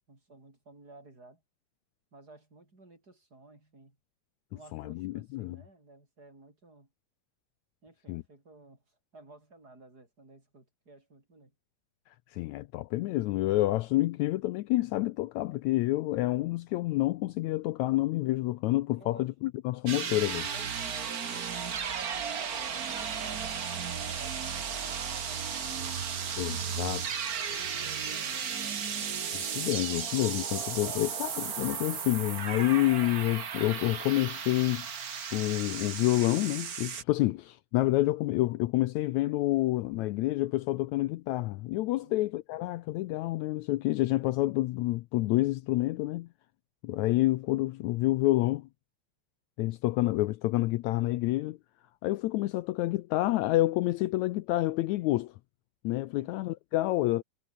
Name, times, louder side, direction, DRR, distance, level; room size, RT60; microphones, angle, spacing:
voice 1, 0.1-1.4 2.1-4.0 4.5-6.9 7.8-11.5 18.9-19.3 20.5-26.9 27.3-29.1 42.0-42.2 56.1-56.4, right 2 dB, 25° right, 6.9 m, -55 dB
voice 2, 4.7-5.6 8.1-8.2 12.3-20.5 26.4-27.0 29.3-34.9 35.3-46.3 46.8-48.7 49.6-51.6 52.0-55.3 55.8-57.2, left 17 dB, 85° left, 1.6 m, -28 dB
sound 1, 19.9-37.0, right 7 dB, 55° right, 0.9 m, -35 dB
omnidirectional pair, 4.0 m